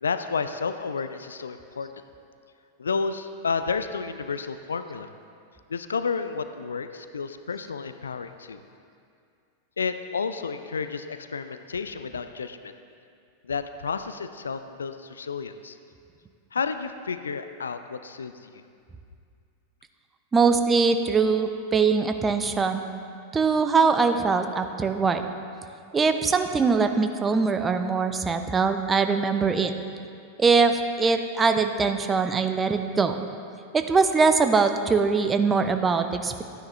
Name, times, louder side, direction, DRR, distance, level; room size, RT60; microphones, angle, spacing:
voice 1, 0.0-1.9 2.8-5.1 5.7-8.6 9.8-12.7 13.4-15.8 16.5-18.6, left 5 dB, 70° left, 10 dB, 0.4 m, -31 dB
voice 2, 20.3-22.8 23.3-25.3 25.9-29.7 30.4-33.2 33.7-36.4, right 4 dB, 15° right, 7 dB, 0.6 m, -22 dB
12.0 x 9.6 x 3.2 m, 2.4 s
figure-of-eight pair, 90°, 0 cm